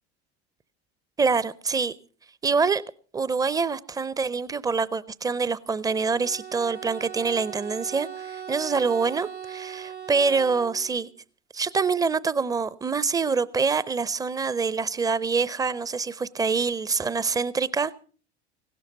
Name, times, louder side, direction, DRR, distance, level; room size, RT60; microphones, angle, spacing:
voice 1, 1.2-1.9 2.4-2.8 3.1-11.1 11.5-17.9, right 5 dB, 10° right, 0.6 m, -25 dB
Bowed string instrument, 5.8-11.1, right 9 dB, 85° right, 1.5 m, -39 dB
17.0 x 12.5 x 5.3 m
figure-of-eight pair, 75°, 33 cm